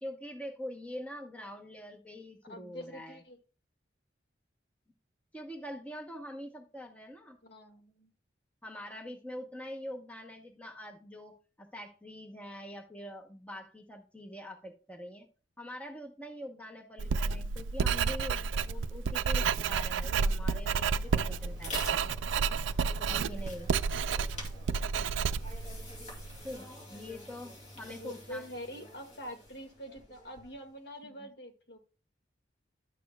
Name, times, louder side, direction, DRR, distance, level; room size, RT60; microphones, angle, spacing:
voice 1, 0.0-3.2 5.3-7.4 8.6-15.3 15.6-22.1 23.1-23.7 26.4-28.4 31.0-31.2, left 1 dB, 5° left, 2 dB, 0.8 m, -44 dB
voice 2, 2.5-3.4 7.4-8.1 27.9-31.8, equal, 60° left, 3 dB, 1.9 m, -45 dB
Writing, 17.0-26.4, right 5 dB, 80° right, 0.4 m, -31 dB
sound 1, 20.8-30.7, left 1 dB, 35° left, 2.4 m, -47 dB
11.5 x 6.7 x 2.3 m, 0.35 s
head